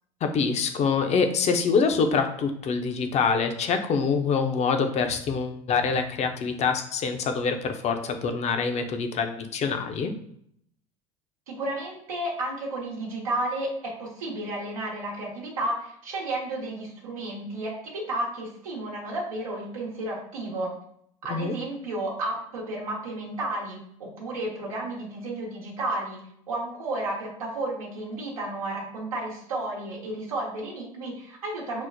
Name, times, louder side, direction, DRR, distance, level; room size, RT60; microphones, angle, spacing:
voice 1, 0.2-10.2 21.3-21.6, left 5 dB, 40° left, 6 dB, 0.6 m, -25 dB
voice 2, 11.5-20.8 21.2-26.2 26.5-31.9, right 1 dB, 85° right, -4 dB, 1.0 m, -32 dB
6.0 x 2.0 x 2.6 m, 0.68 s
hypercardioid pair, 75°, 17 cm